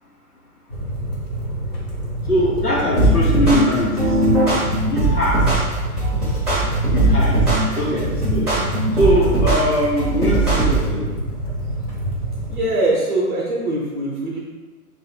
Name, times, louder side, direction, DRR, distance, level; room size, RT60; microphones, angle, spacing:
sound 1, 0.7-12.6, right 1 dB, 25° left, 0.8 m, -28 dB
voice 1, 2.3-4.1 4.9-5.4 6.9-7.4 7.8-8.5 9.0-11.1, equal, 85° left, -5 dB, 1.1 m, -21 dB
sound 2, 3.0-10.9, right 2 dB, 5° left, 0.4 m, -19 dB
voice 2, 12.5-14.4, right 2 dB, 35° right, -4 dB, 0.7 m, -22 dB
3.2 x 2.6 x 4.3 m, 1.3 s
figure-of-eight pair, 125°, 45 cm